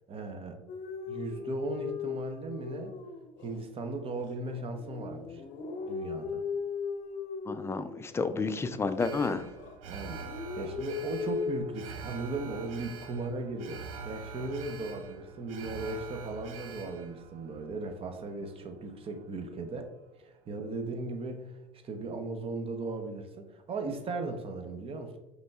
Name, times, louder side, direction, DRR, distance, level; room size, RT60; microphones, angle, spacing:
voice 1, 0.1-0.6 1.1-2.9 3.4-5.4 5.9-6.4 9.8-10.3 10.5-19.9 20.2-21.6 21.8-25.2, right 3 dB, 35° right, 6 dB, 0.7 m, -37 dB
sound 1, 0.7-3.6 4.1-8.3 8.8-9.7 10.0-11.6, left 5 dB, 50° left, 0.7 m, -37 dB
voice 2, 7.5-9.5, left 4 dB, 15° left, 10 dB, 0.3 m, -31 dB
Alarm, 9.0-19.2 19.6-19.7, right 5 dB, 80° right, 0.4 m, -45 dB
5.2 x 3.2 x 2.3 m, 1.1 s
hypercardioid pair, 70°, 17 cm